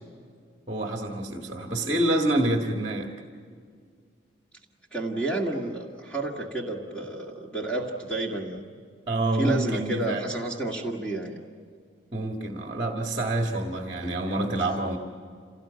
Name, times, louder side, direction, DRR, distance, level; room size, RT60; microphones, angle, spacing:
voice 1, 0.7-3.1 9.1-10.3 12.1-15.0, right 1 dB, 30° right, 2 dB, 1.8 m, -27 dB
voice 2, 4.9-8.7 9.3-11.4, right 2 dB, 5° left, -2 dB, 2.0 m, -30 dB
27.5 x 18.5 x 8.9 m, 2.1 s
head